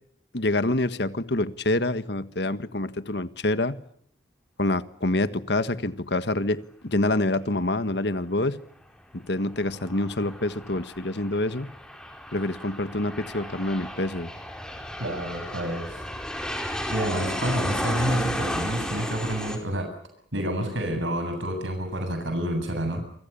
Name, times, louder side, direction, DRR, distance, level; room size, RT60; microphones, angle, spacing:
voice 1, 0.3-3.8 4.6-8.6 9.1-11.7 12.3-14.3, left 2 dB, 60° left, 12 dB, 1.6 m, -26 dB
Aircraft, 9.4-19.6, equal, 5° left, 4.4 m, -33 dB
voice 2, 15.0-15.9 16.9-19.9 20.3-23.0, equal, 80° right, 6 dB, 7.9 m, -28 dB
29.0 x 25.0 x 7.0 m, 0.69 s
head